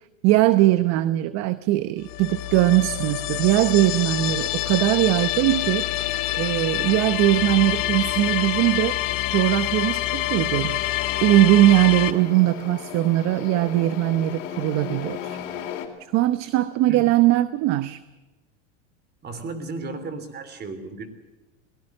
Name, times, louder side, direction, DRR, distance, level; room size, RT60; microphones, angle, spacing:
voice 1, 0.2-5.8 6.3-9.0 9.3-10.8 11.2-15.4 16.1-18.0, right 16 dB, 45° right, 14 dB, 0.9 m, -20 dB
sound 1, 2.0-12.1, left 15 dB, 55° left, 1.8 m, -26 dB
sound 2, 3.4-15.9, left 9 dB, 75° left, 3.9 m, -38 dB
voice 2, 19.2-21.1, right 3 dB, 25° right, 11 dB, 3.3 m, -34 dB
22.0 x 18.5 x 7.6 m, 1.2 s
supercardioid pair, 130°, 38 cm